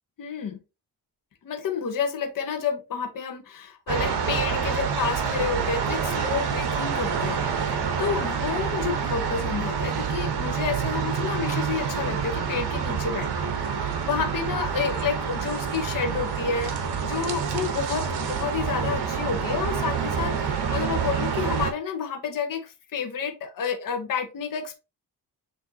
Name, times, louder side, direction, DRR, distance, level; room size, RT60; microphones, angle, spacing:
voice 1, 0.2-0.6 1.4-24.7, left 6 dB, 50° left, 5 dB, 0.8 m, -30 dB
sound 1, 3.9-21.7, right 6 dB, 65° right, 0.9 m, -27 dB
6.6 x 2.7 x 2.6 m, 0.29 s
wide cardioid pair, 160°, 42 cm